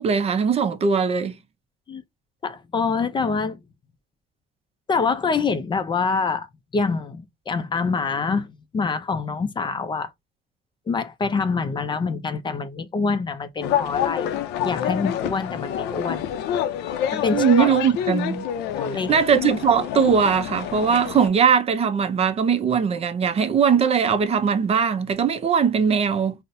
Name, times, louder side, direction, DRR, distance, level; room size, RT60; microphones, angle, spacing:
voice 1, 0.0-1.4 17.3-18.5 19.1-26.3, right 6 dB, 35° right, 0.5 m, -20 dB
voice 2, 2.4-3.6 4.9-6.5 6.7-10.1 10.9-16.2 17.1-17.7 18.8-19.1, left 4 dB, 30° left, 0.4 m, -25 dB
sound 1, 13.6-21.3, left 9 dB, 85° left, 0.5 m, -27 dB
4.0 x 2.1 x 2.5 m
cardioid pair, 110°, 17 cm